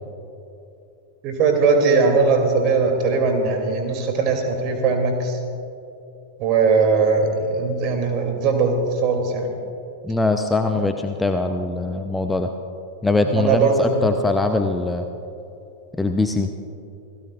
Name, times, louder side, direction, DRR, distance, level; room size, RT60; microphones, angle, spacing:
voice 1, 1.2-5.4 6.4-9.6 13.3-14.1, right 4 dB, 40° right, 3 dB, 2.8 m, -20 dB
voice 2, 10.0-12.5 13.0-15.1 16.0-16.5, left 2 dB, 5° left, 6 dB, 0.7 m, -22 dB
28.5 x 17.0 x 2.5 m, 2.8 s
figure-of-eight pair, 90°, 0 cm